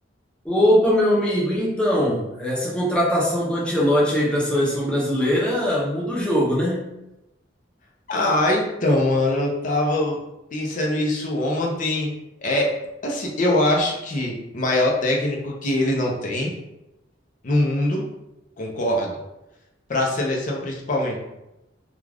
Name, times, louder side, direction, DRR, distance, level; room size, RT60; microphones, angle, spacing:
voice 1, 0.4-6.9, equal, 5° left, -6 dB, 0.6 m, -21 dB
voice 2, 8.1-10.2 10.5-12.1 12.4-12.7 13.0-16.5 17.4-18.0 18.6-19.1 19.9-21.2, left 1 dB, 45° left, -1 dB, 0.6 m, -22 dB
2.3 x 2.3 x 3.3 m, 0.92 s
head